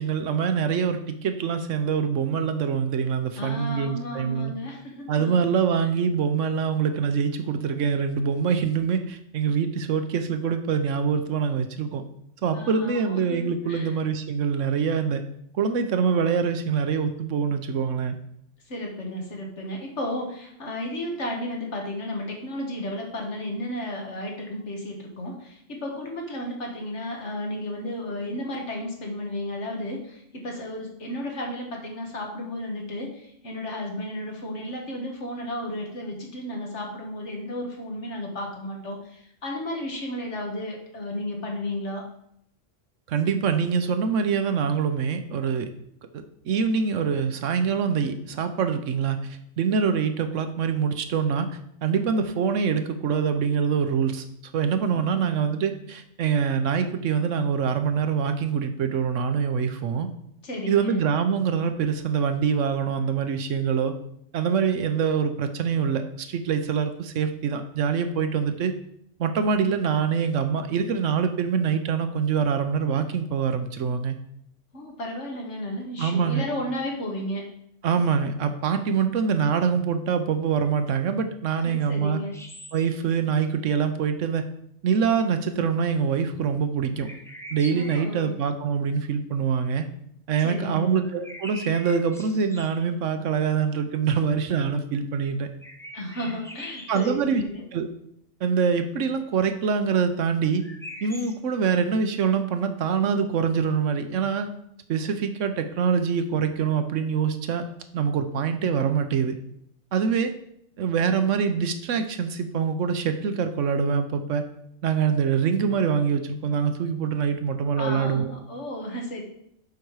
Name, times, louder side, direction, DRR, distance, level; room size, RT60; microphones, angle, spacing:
voice 1, 0.0-4.5 5.1-12.0 12.4-15.2 15.5-18.2 43.1-45.7 46.1-51.5 51.8-54.2 54.5-60.1 60.7-63.9 64.3-68.7 69.2-74.2 76.0-76.4 77.8-82.2 82.7-84.5 84.8-87.1 87.5-89.9 90.3-95.5 96.9-97.4 97.7-97.9 98.4-100.6 101.0-104.5 104.9-107.6 107.9-109.3 109.9-110.3 110.8-114.4 114.8-118.3, right 6 dB, 80° right, 8 dB, 1.1 m, -24 dB
voice 2, 3.4-5.5 12.5-14.0 18.7-42.0 54.9-55.5 60.4-61.0 74.7-77.5 81.6-82.4 87.7-88.3 90.4-90.9 95.9-97.7 117.8-119.2, left 1 dB, 65° left, 0 dB, 1.8 m, -33 dB
sound 1, 82.3-83.0 87.0-88.3 91.0-92.9 95.6-97.2 100.6-101.3, equal, 5° left, 0.6 m, -43 dB
7.1 x 5.1 x 4.7 m, 0.73 s
omnidirectional pair, 1.3 m